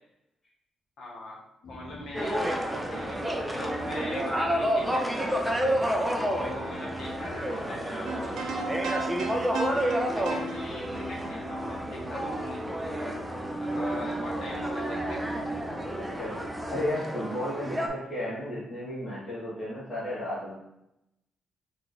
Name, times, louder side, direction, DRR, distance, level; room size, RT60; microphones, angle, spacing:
voice 1, 1.0-1.4 1.7-5.2 6.0-9.0 9.6-12.6 13.6-15.2, left 1 dB, 60° left, -3 dB, 1.0 m, -41 dB
sound 1, 1.6-16.9, left 1 dB, 35° left, 0.7 m, -45 dB
sound 2, 2.1-17.9, right 1 dB, 5° right, 0.3 m, -30 dB
sound 3, 8.1-12.4, right 3 dB, 85° right, 0.6 m, -36 dB
voice 2, 15.9-16.4 16.7-20.6, left 1 dB, 15° left, -12 dB, 1.2 m, -33 dB
3.4 x 2.3 x 4.0 m, 0.85 s
wide cardioid pair, 180°, 0 cm